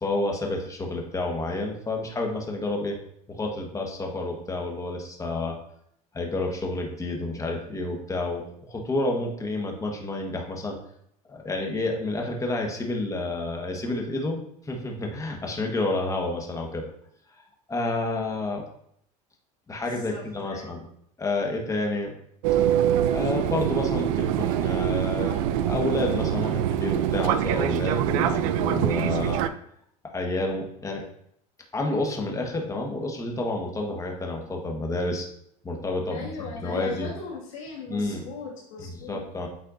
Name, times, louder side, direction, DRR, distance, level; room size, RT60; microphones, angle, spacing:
voice 1, 0.0-3.0 3.3-5.6 6.1-10.8 11.3-14.4 14.6-16.8 17.7-18.6 19.7-20.8 21.2-22.1 23.1-29.4 30.0-31.0 31.7-35.3 35.6-37.1 37.9-38.2 38.9-39.5, left 2 dB, 20° left, 1 dB, 1.4 m, -29 dB
voice 2, 19.9-20.8 36.1-39.2, left 4 dB, 90° left, -3 dB, 2.1 m, -39 dB
Fixed-wing aircraft airplane, 22.4-29.5, right 11 dB, 85° right, 0.4 m, -24 dB
8.7 x 4.3 x 2.6 m, 0.70 s
supercardioid pair, 105°, 17 cm